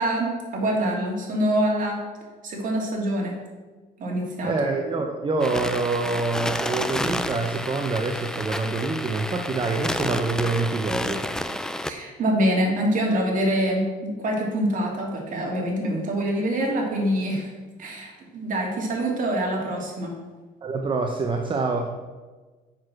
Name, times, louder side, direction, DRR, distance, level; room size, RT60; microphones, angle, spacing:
voice 1, 0.0-2.0 2.4-3.4 4.0-4.5 11.8-17.5 17.8-20.1, right 1 dB, 50° right, -1 dB, 2.7 m, -25 dB
voice 2, 4.4-11.2 20.6-21.9, right 3 dB, 30° right, 3 dB, 0.8 m, -26 dB
sound 1, 5.4-11.9, left 1 dB, 5° left, 0.5 m, -30 dB
7.3 x 6.4 x 6.0 m, 1.3 s
cardioid pair, 110°, 17 cm